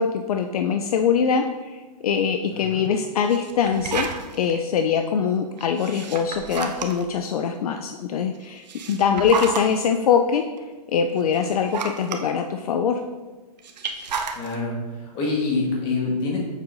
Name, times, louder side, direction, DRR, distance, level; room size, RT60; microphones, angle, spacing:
voice 1, 0.0-10.4 10.9-13.0, left 7 dB, 60° left, 5 dB, 0.4 m, -23 dB
sound 1, 3.2-4.5 5.6-7.2 8.4-9.8 10.6-10.7 11.2-12.2 13.6-14.5, right 5 dB, 80° right, 0.7 m, -31 dB
voice 2, 14.3-16.4, left 3 dB, 25° left, -2 dB, 1.4 m, -26 dB
7.1 x 5.4 x 2.6 m, 1.3 s
hypercardioid pair, 160°, 21 cm